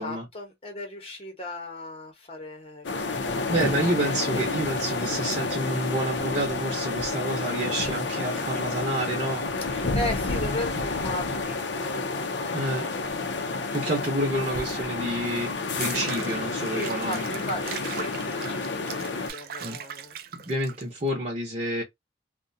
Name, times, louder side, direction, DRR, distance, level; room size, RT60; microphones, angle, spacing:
voice 1, 0.0-3.6 9.6-12.9 16.6-20.2, left 1 dB, 35° left, 0.8 m, -37 dB
sound 1, 2.8-19.3, left 3 dB, 85° left, 0.5 m, -30 dB
voice 2, 3.5-9.5 10.8-10.9 12.5-12.9 13.7-17.3 19.6-19.8 20.4-21.8, right 1 dB, 40° right, 0.7 m, -29 dB
Water / Bathtub (filling or washing), 15.6-21.1, right 8 dB, 55° right, 0.3 m, -40 dB
2.4 x 2.2 x 2.6 m
head